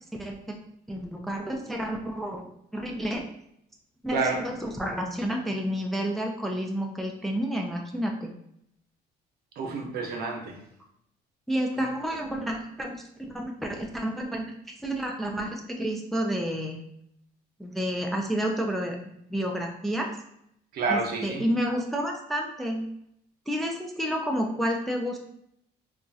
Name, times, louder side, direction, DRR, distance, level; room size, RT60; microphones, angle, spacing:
voice 1, 0.1-0.6 0.9-2.5 2.7-3.3 4.0-8.3 11.5-16.8 17.6-19.0 19.3-20.1 20.9-22.9 23.5-25.2, equal, ahead, 1 dB, 0.3 m, -30 dB
voice 2, 4.1-4.5 9.6-10.6 11.7-11.9 20.7-21.4, right 4 dB, 65° right, 2 dB, 0.7 m, -29 dB
2.9 x 2.3 x 2.6 m, 0.74 s
cardioid pair, 110°, 17 cm